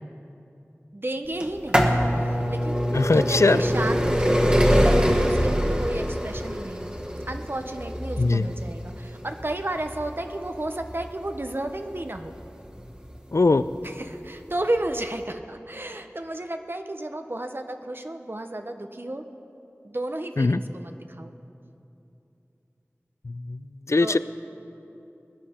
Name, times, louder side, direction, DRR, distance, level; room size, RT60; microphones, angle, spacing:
voice 1, 0.9-1.9 2.2-2.8 3.1-4.8 5.2-6.9 7.3-12.3 13.8-19.2 19.8-21.3 24.0-24.2, right 1 dB, 45° right, 7 dB, 0.7 m, -32 dB
sound 1, 1.4-13.1 13.9-14.0 14.9-15.0 15.2-15.3, equal, 20° right, 1.3 m, -24 dB
voice 2, 2.9-3.6 8.2-8.5 13.3-13.6 20.4-20.6 23.3-23.6 23.9-24.2, left 3 dB, 70° left, 14 dB, 0.4 m, -20 dB
20.0 x 10.5 x 4.3 m, 2.8 s
wide cardioid pair, 40°, 5 cm